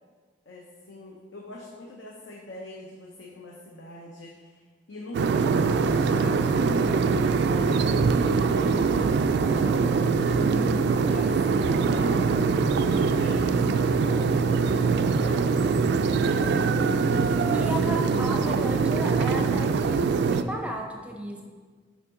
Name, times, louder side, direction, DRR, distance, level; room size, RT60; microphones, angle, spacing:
voice 1, 0.5-10.6 11.1-12.2 12.7-16.7 17.5-17.8, left 2 dB, 70° left, -1 dB, 0.7 m, -43 dB
sound 1, 5.1-20.4, right 4 dB, 60° right, 0.3 m, -23 dB
voice 2, 10.2-11.0 17.5-21.4, right 1 dB, 5° right, 2 dB, 0.6 m, -35 dB
7.2 x 5.0 x 3.7 m, 1.5 s
head